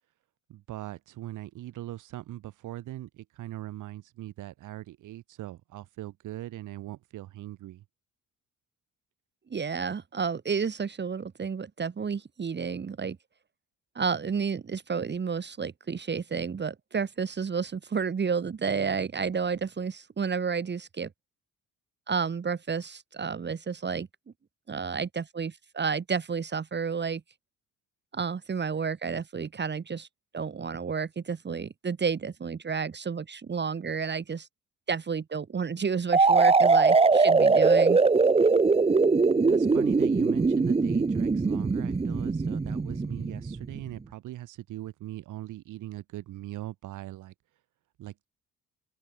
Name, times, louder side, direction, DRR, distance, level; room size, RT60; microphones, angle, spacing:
voice 1, 0.5-7.8 39.5-47.3 48.0-48.3, right 14 dB, 85° right, 3.2 m, -40 dB
voice 2, 9.5-13.2 14.0-21.1 22.1-24.1 24.7-27.2 28.1-30.1 30.3-34.5 34.9-38.0, right 6 dB, 35° right, 2.0 m, -31 dB
sound 1, 36.1-43.8, right 4 dB, 20° right, 1.0 m, -22 dB
open air
cardioid pair, 90°, 30 cm